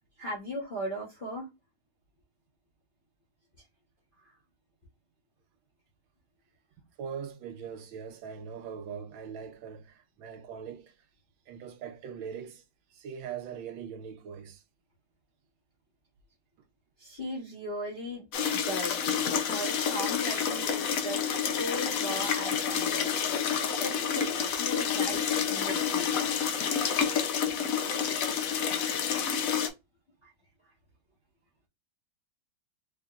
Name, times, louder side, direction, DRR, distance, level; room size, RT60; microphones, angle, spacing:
voice 1, 0.2-1.5 4.2-4.3 17.0-18.3 18.7-23.2 23.5-26.4 28.4-28.5 30.2-30.3, equal, 35° left, 0.8 m, -38 dB
voice 2, 7.0-10.9 11.5-12.6 12.9-14.6, right 7 dB, 75° right, 1.3 m, -41 dB
sound 1, 18.3-29.7, left 7 dB, 85° left, 0.7 m, -29 dB
4.8 x 2.8 x 2.4 m
omnidirectional pair, 2.3 m